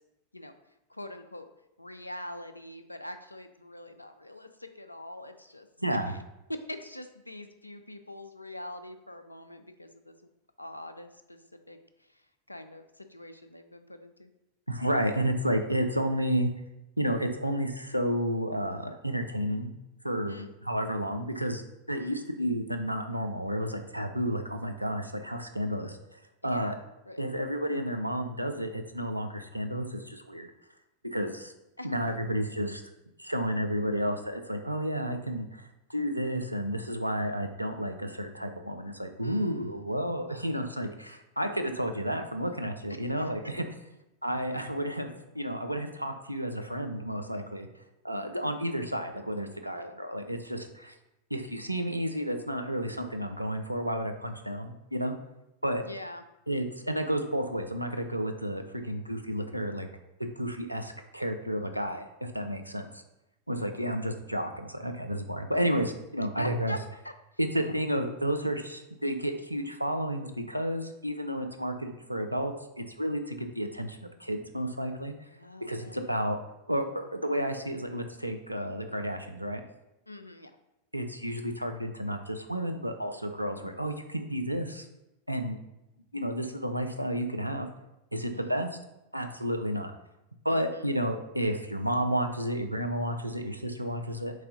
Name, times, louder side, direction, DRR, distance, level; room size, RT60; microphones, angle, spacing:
voice 1, 0.9-1.5 1.8-5.7 6.1-6.2 6.7-10.2 10.6-11.4 11.7-11.8 12.1-12.2 12.5-14.3 20.3-20.5 22.0-22.2 26.4-27.2 31.8-31.9 39.2-40.0 43.2-43.5 48.4-48.5 49.7-50.0 55.8-56.2 65.5-65.7 66.4-66.8 67.0-67.1 75.4-76.0 80.1-80.5 88.3-88.7 90.5-91.0, left 1 dB, 85° left, 8 dB, 0.3 m, -43 dB
voice 2, 5.8-6.1 14.7-16.5 17.0-19.8 20.0-20.4 20.6-21.6 21.9-26.0 26.4-26.7 27.2-30.5 31.1-31.5 31.8-32.8 33.2-43.6 44.2-47.7 48.0-50.9 51.3-55.1 55.6-55.8 56.5-59.9 60.2-62.9 63.5-66.7 67.4-75.1 75.7-76.4 76.7-79.6 80.9-84.9 85.3-85.6 86.1-87.7 88.1-88.7 89.1-89.9 90.4-94.3, equal, 90° right, 5 dB, 0.4 m, -31 dB
3.4 x 3.2 x 3.8 m, 0.89 s
figure-of-eight pair, 90°, 0 cm